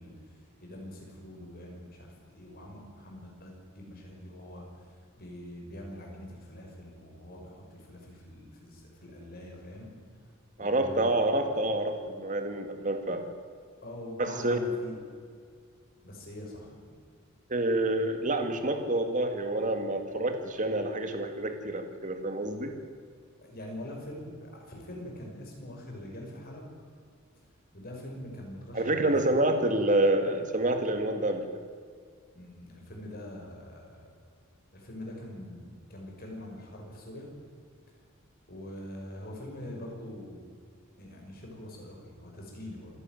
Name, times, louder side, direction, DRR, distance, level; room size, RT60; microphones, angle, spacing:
voice 1, 0.0-9.9 10.6-11.3 13.8-15.0 16.0-16.7 23.4-26.7 27.7-29.3 32.4-34.1 34.7-37.3 38.5-40.4 41.0-42.9, left 1 dB, 45° left, 0 dB, 5.9 m, -44 dB
voice 2, 10.6-13.2 14.2-14.6 17.5-22.7 28.7-31.5, right 1 dB, 35° right, 6 dB, 2.2 m, -28 dB
26.5 x 11.5 x 9.3 m, 2.1 s
head